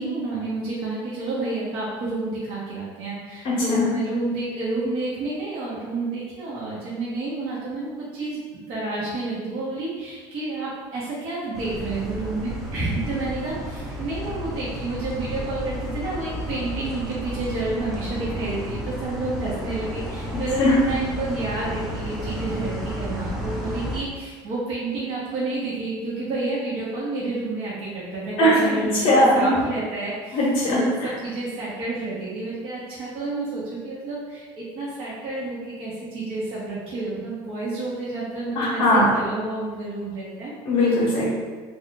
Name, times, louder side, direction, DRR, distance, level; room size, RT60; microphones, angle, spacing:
voice 1, 0.0-30.4 30.7-40.5, right 2 dB, 50° right, -9 dB, 0.9 m, -30 dB
voice 2, 3.4-3.9 20.6-20.7 28.4-28.5 28.9-29.5 30.3-31.1 38.5-39.1 40.7-41.3, left 1 dB, 45° left, -7 dB, 0.8 m, -19 dB
sound 1, 11.5-24.0, equal, ahead, 0.5 m, -32 dB
2.4 x 2.3 x 3.7 m, 1.4 s
cardioid pair, 155°, 12 cm